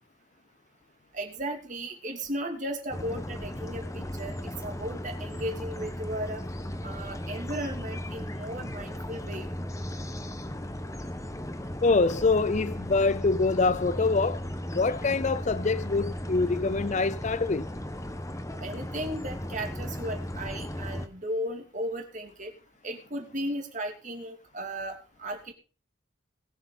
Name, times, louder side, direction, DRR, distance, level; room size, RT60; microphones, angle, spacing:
voice 1, 1.1-6.4 6.8-9.5 18.6-22.5 22.8-25.5, right 1 dB, 40° right, 2.8 m, -35 dB
sound 1, 2.9-21.1, left 1 dB, 15° left, 1.1 m, -36 dB
voice 2, 11.8-17.7, left 3 dB, 40° left, 0.5 m, -25 dB
20.0 x 8.0 x 4.1 m
head